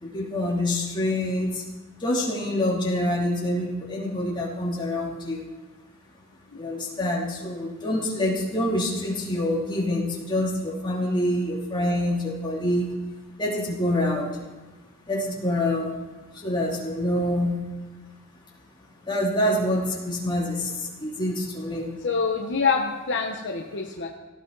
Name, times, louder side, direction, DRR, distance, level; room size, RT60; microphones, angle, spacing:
voice 1, 0.0-1.6 2.0-5.4 6.6-12.9 13.4-14.3 15.1-15.9 16.4-17.6 19.1-20.7 21.0-21.8, left 1 dB, 20° left, -4 dB, 3.1 m, -26 dB
voice 2, 22.0-24.1, left 5 dB, 55° left, 2 dB, 1.1 m, -26 dB
17.5 x 14.5 x 4.1 m, 1.2 s
head